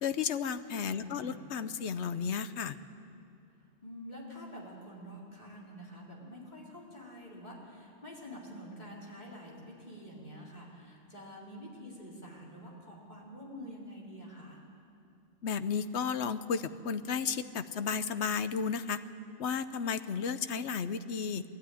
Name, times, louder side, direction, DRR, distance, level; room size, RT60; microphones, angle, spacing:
voice 1, 0.0-2.8 15.4-19.0 19.4-21.4, left 6 dB, 70° left, 12 dB, 1.0 m, -33 dB
voice 2, 0.8-1.4 3.8-14.6, equal, 35° left, -4 dB, 4.1 m, -47 dB
20.0 x 13.0 x 9.9 m, 2.5 s
omnidirectional pair, 1.2 m